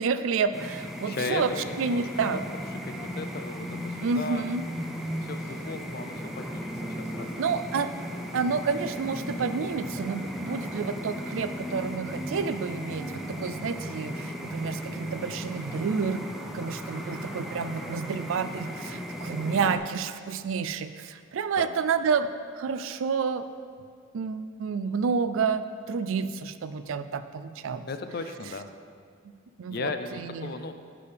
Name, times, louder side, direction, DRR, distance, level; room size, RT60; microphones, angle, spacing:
voice 1, 0.0-1.5 1.8-2.4 4.0-4.6 7.4-7.9 8.3-16.2 16.5-22.3 22.6-23.4 24.1-27.9 29.6-29.9 30.2-30.5, right 5 dB, 75° right, 11 dB, 0.4 m, -29 dB
sound 1, 0.5-19.8, equal, ahead, 0.5 m, -36 dB
voice 2, 1.1-2.4 2.7-4.4 5.2-7.5 13.0-13.6 21.6-21.7 27.9-28.7 29.7-30.7, left 3 dB, 50° left, 8 dB, 0.5 m, -37 dB
9.8 x 6.8 x 3.4 m, 2.2 s
head